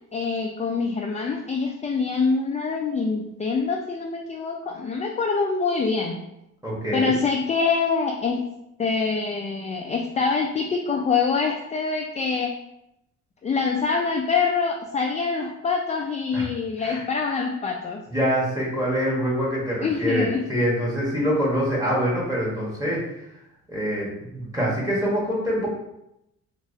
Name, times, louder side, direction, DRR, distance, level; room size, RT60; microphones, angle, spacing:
voice 1, 0.1-6.2 6.9-8.4 8.8-12.5 13.4-18.0 19.8-20.4, left 4 dB, 25° left, 1 dB, 0.3 m, -25 dB
voice 2, 6.6-7.1 16.3-16.4 16.8-17.0 18.1-23.0 23.7-25.7, equal, 10° right, -5 dB, 1.4 m, -25 dB
3.1 x 2.9 x 2.7 m, 0.85 s
cardioid pair, 90°, 30 cm